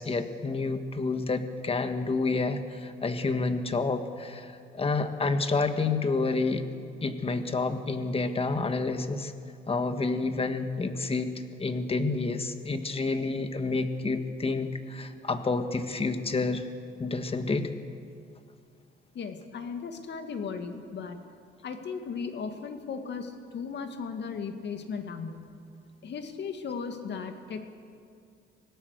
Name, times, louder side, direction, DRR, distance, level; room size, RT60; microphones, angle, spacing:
voice 1, 0.0-6.6 7.0-9.3 9.7-11.3 11.6-16.6 17.0-17.7, left 3 dB, 30° left, 8 dB, 1.6 m, -29 dB
voice 2, 19.1-21.2 21.6-25.5 26.0-27.7, left 5 dB, 60° left, 6 dB, 2.1 m, -36 dB
25.0 x 18.0 x 6.6 m, 2.4 s
cardioid pair, 90°, 20 cm